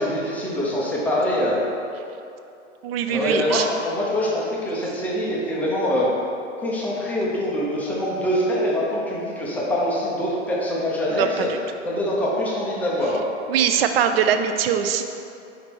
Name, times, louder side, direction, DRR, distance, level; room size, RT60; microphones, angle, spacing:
voice 1, 0.0-1.6 3.1-6.1 6.6-11.5 11.9-13.2, left 1 dB, 5° left, -5 dB, 0.4 m, -24 dB
voice 2, 2.8-3.7 11.1-11.6 13.5-15.0, right 8 dB, 50° right, 7 dB, 0.5 m, -22 dB
5.2 x 4.0 x 4.5 m, 2.7 s
hypercardioid pair, 120°, 38 cm